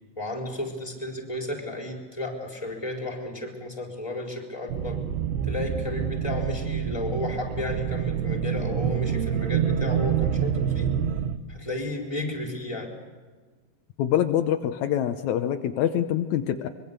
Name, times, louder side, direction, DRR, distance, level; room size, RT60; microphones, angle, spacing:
voice 1, 0.2-5.0 5.4-10.9 11.5-12.9, left 2 dB, 10° left, 1 dB, 3.6 m, -33 dB
sound 1, 4.7-11.4, right 8 dB, 85° right, 3.0 m, -27 dB
voice 2, 14.0-16.7, left 10 dB, 90° left, 7 dB, 1.6 m, -25 dB
24.5 x 22.5 x 6.8 m, 1.4 s
omnidirectional pair, 4.5 m